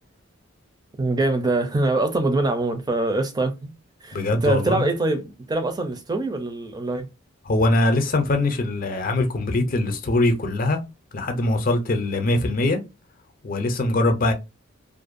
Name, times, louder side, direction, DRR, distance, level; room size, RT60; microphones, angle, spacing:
voice 1, 1.0-3.7 4.0-7.1, right 2 dB, 20° right, 0.4 m, -24 dB
voice 2, 4.1-4.9 7.4-10.8 11.1-12.8 13.4-14.3, left 2 dB, 40° left, 0.5 m, -22 dB
2.5 x 2.2 x 2.5 m
head